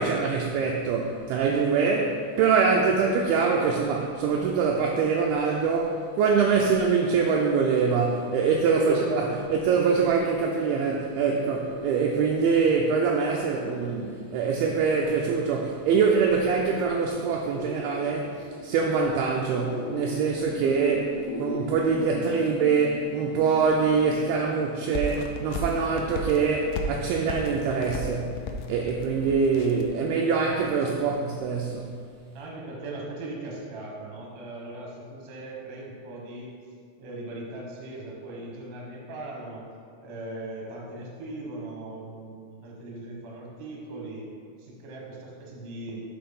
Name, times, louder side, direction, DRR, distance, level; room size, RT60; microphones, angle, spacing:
voice 1, 0.0-28.4 28.7-32.0, right 5 dB, 85° right, 0 dB, 2.2 m, -24 dB
sound 1, 5.7-21.7, left 2 dB, 75° left, 2.8 m, -43 dB
voice 2, 8.7-9.1 30.7-31.1 32.3-36.5 37.0-39.6 40.0-44.3 44.6-46.0, right 2 dB, 65° right, -3 dB, 1.7 m, -39 dB
sound 2, 18.0-27.5, left 1 dB, 50° left, 2.2 m, -43 dB
sound 3, 24.9-29.9, left 1 dB, 90° left, 2.9 m, -34 dB
7.7 x 4.3 x 5.3 m, 2.1 s
omnidirectional pair, 5.0 m